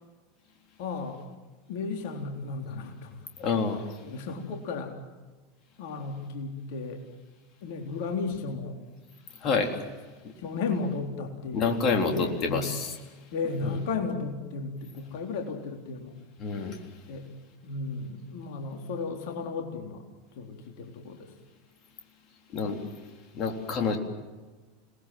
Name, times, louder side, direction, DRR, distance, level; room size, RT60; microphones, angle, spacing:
voice 1, 0.8-1.2 1.7-3.6 4.0-4.9 5.8-7.0 7.6-8.8 10.4-12.7 13.3-16.2 17.1-17.2 17.6-20.1 20.4-21.3, left 4 dB, 55° left, 2 dB, 3.8 m, -34 dB
voice 2, 3.4-3.8 9.4-9.8 10.2-10.3 11.5-12.9 16.4-16.8 22.5-22.8 23.3-24.0, left 5 dB, 40° left, 3 dB, 3.9 m, -27 dB
30.0 x 20.5 x 7.7 m, 1.3 s
figure-of-eight pair, 80°, 0 cm